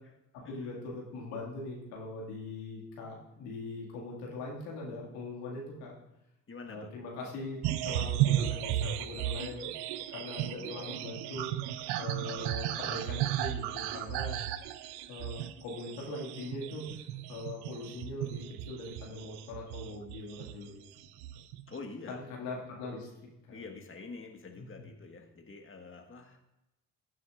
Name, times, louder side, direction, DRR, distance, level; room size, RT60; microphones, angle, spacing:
voice 1, 0.3-5.9 6.7-9.7 10.1-11.5 12.0-14.4 15.1-16.9 17.3-20.8 22.1-23.1 23.5-23.6 24.5-24.7, left 2 dB, 85° left, -2 dB, 2.3 m, -41 dB
voice 2, 6.5-6.9 10.5-11.0 21.7-22.2 23.5-26.4, left 4 dB, 30° left, 3 dB, 1.6 m, -46 dB
sound 1, 7.6-20.7 21.0-21.7, right 13 dB, 80° right, 0.6 m, -35 dB
15.5 x 9.6 x 2.5 m, 0.91 s
hypercardioid pair, 45°, 39 cm